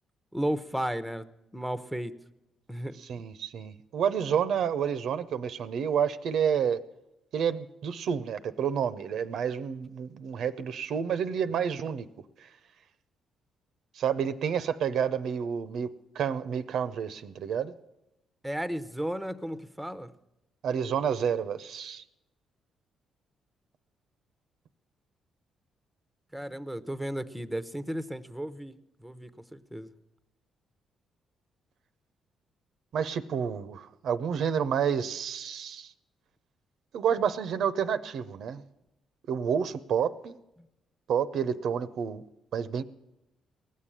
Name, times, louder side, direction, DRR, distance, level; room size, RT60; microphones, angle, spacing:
voice 1, 0.3-1.2 1.5-2.1 2.7-3.0 18.4-20.1 26.3-28.7 29.0-29.9, right 1 dB, ahead, 0.7 m, -34 dB
voice 2, 3.0-6.8 7.3-12.1 12.4-12.5 13.9-15.9 16.1-17.7 20.6-22.0 32.9-35.9 36.9-38.6 39.3-40.4 41.1-42.2 42.5-42.8, right 7 dB, 70° right, 0.6 m, -29 dB
18.0 x 7.4 x 9.8 m
cardioid pair, 90°, 0 cm